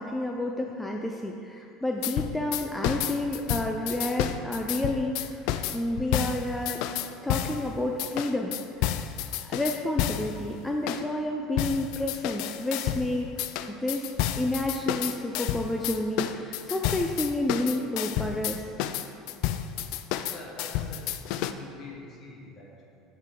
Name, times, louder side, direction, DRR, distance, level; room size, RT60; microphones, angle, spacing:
voice 1, 0.0-6.8 7.2-8.9 9.5-14.1 14.4-18.7, left 1 dB, 10° left, 1 dB, 0.6 m, -30 dB
sound 1, 2.0-7.6 8.0-10.3 10.9-11.0 11.6-13.1 13.4-21.5, left 12 dB, 65° left, 0.3 m, -30 dB
voice 2, 20.3-23.0, left 3 dB, 45° left, -3 dB, 1.8 m, -45 dB
6.6 x 5.4 x 4.7 m, 2.5 s
hypercardioid pair, 80°, 0 cm